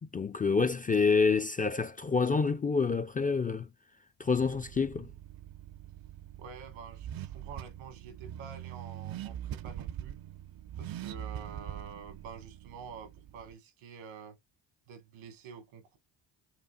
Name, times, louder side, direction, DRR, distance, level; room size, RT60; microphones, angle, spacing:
voice 1, 0.0-3.7 4.2-5.1, left 4 dB, 20° left, 0.3 m, -27 dB
Car / Accelerating revving vroom, 4.3-13.5, right 11 dB, 50° right, 0.5 m, -43 dB
voice 2, 6.4-10.2 10.8-14.4 14.9-16.0, right 6 dB, 85° right, 1.4 m, -48 dB
5.0 x 2.4 x 2.3 m
supercardioid pair, 60°, 47 cm